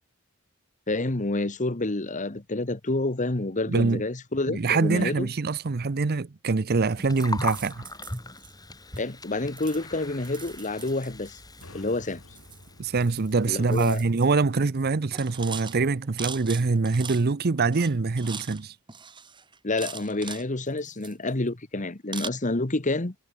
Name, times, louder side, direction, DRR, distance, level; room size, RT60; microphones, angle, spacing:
voice 1, 0.9-5.3 9.0-11.4 11.7-12.2 13.5-14.0 19.6-23.1, left 2 dB, 35° left, 1.4 m, -28 dB
voice 2, 3.7-4.0 4.5-7.8 12.8-18.7, right 4 dB, 45° right, 0.6 m, -24 dB
Gurgling, 6.9-14.1, left 2 dB, 20° left, 4.4 m, -40 dB
sound 1, 7.2-8.5 9.0-9.2 9.6-11.7 12.3-13.3 13.5-14.3 14.6-14.8 15.1-17.5 17.7-18.6 18.9-20.5 20.8-21.5 22.1-22.3, right 6 dB, 20° right, 1.6 m, -41 dB
sound 2, 11.6-15.3, left 1 dB, 70° left, 5.8 m, -52 dB
head